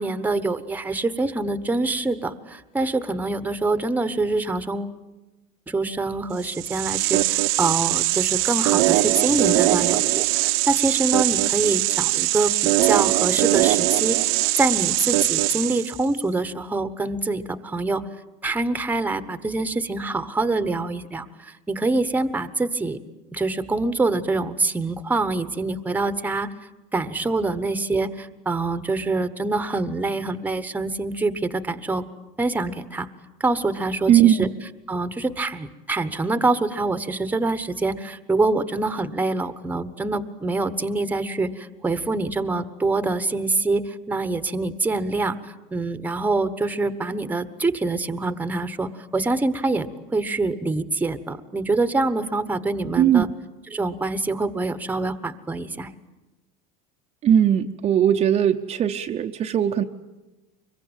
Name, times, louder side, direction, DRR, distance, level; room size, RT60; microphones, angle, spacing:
voice 1, 0.0-5.0 5.7-14.3 14.6-18.0 18.4-23.0 23.3-26.5 26.9-32.0 32.4-33.1 33.4-34.5 34.9-53.3 53.7-55.9, right 3 dB, 10° right, 12 dB, 1.2 m, -25 dB
sound 1, 6.4-16.0, right 18 dB, 80° right, 1.0 m, -21 dB
voice 2, 34.1-34.5 53.0-53.2 57.2-59.8, right 10 dB, 35° right, 4 dB, 0.8 m, -19 dB
25.0 x 22.5 x 9.0 m, 1.1 s
supercardioid pair, 130°, 19 cm